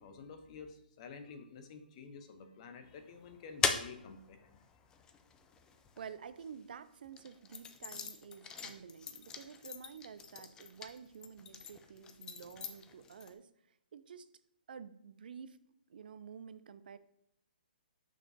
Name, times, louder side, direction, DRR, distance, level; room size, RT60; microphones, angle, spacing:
voice 1, 0.0-4.6, left 5 dB, 40° left, 8 dB, 0.8 m, -50 dB
sound 1, 2.9-6.5 7.1-13.3, left 6 dB, 10° left, 0.4 m, -41 dB
voice 2, 6.0-13.5 13.9-14.3 14.7-15.6 15.9-17.0, right 7 dB, 60° right, 14 dB, 0.4 m, -50 dB
6.3 x 6.0 x 2.7 m, 0.79 s
hypercardioid pair, 140°, 5 cm